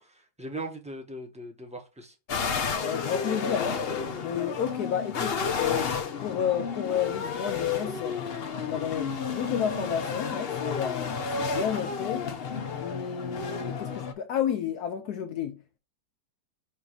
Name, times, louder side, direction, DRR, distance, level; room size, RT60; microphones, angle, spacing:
voice 1, 0.0-2.1, right 2 dB, 5° right, 0.9 m, -39 dB
sound 1, 2.3-14.1, left 5 dB, 50° left, 0.7 m, -31 dB
voice 2, 2.8-3.8 4.2-8.2 8.6-12.3 12.8-15.6, left 9 dB, 70° left, 1.1 m, -31 dB
7.1 x 2.8 x 5.1 m
omnidirectional pair, 1.8 m